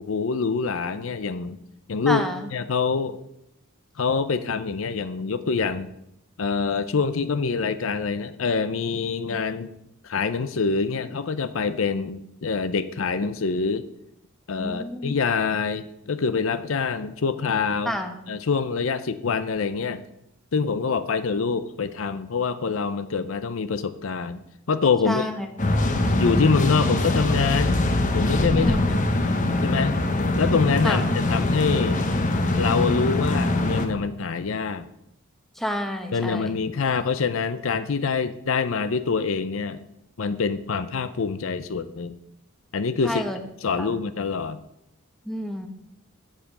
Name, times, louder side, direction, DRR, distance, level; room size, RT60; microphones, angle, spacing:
voice 1, 0.0-1.6 1.9-2.2 2.5-3.2 4.0-5.9 6.4-9.7 10.0-13.8 14.5-17.9 18.3-20.0 20.5-25.3 26.2-27.8 28.1-28.8 29.6-30.0 30.4-32.0 32.6-34.9 36.1-39.8 40.2-42.2 42.7-43.2 43.6-44.6, left 5 dB, 70° left, 12 dB, 0.6 m, -25 dB
voice 2, 2.1-2.5 14.6-15.2 17.9-18.3 25.1-25.5 28.5-29.0 30.8-31.0 35.6-36.5 43.0-43.4 43.8-43.9 45.3-45.7, equal, ahead, 4 dB, 1.0 m, -29 dB
sound 1, 25.6-33.9, left 2 dB, 40° left, 1.1 m, -23 dB
7.5 x 7.2 x 6.7 m, 0.79 s
head